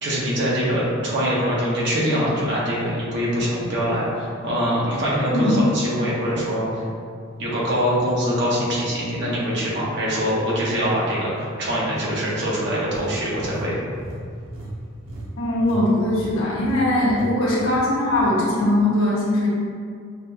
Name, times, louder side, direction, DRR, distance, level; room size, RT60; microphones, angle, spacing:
voice 1, 0.0-6.8 7.4-13.8, equal, 60° right, -7 dB, 1.1 m, -23 dB
voice 2, 5.3-5.6 15.4-19.5, left 1 dB, 80° left, -7 dB, 1.3 m, -20 dB
sound 1, 12.9-15.8 16.1-16.3 16.7-16.8 17.1-17.3 17.6-18.3, right 1 dB, 90° right, 0.8 m, -36 dB
5.9 x 2.3 x 2.8 m, 2.2 s
head